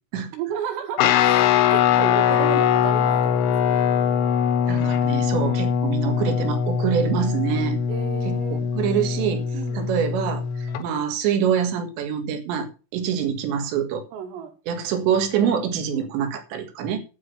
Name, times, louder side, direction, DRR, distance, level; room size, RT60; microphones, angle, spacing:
voice 1, 0.3-3.8 7.9-8.6 9.5-9.9 14.1-14.5 15.9-16.1, right 9 dB, 85° right, 4.7 m, -33 dB
Guitar, 1.0-10.8, left 8 dB, 80° left, 3.4 m, -22 dB
voice 2, 4.7-7.8 8.3-9.4 9.7-14.1 14.7-17.0, right 8 dB, 65° right, 3.7 m, -25 dB
9.7 x 8.4 x 6.9 m
omnidirectional pair, 5.8 m